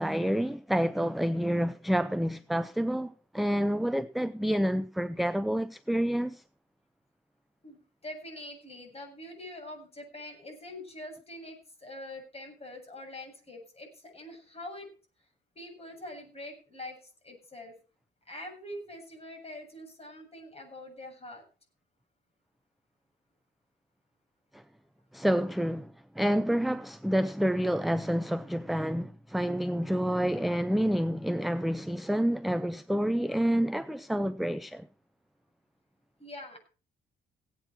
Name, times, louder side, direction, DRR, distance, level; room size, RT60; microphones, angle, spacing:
voice 1, 0.0-6.4 24.5-24.6 25.1-34.9, equal, ahead, 0.6 m, -28 dB
voice 2, 7.6-14.9 15.5-17.0 17.2-17.7 18.3-21.4 36.2-36.6, left 1 dB, 30° left, 7.7 m, -44 dB
17.0 x 9.3 x 4.6 m
cardioid pair, 90°, 20 cm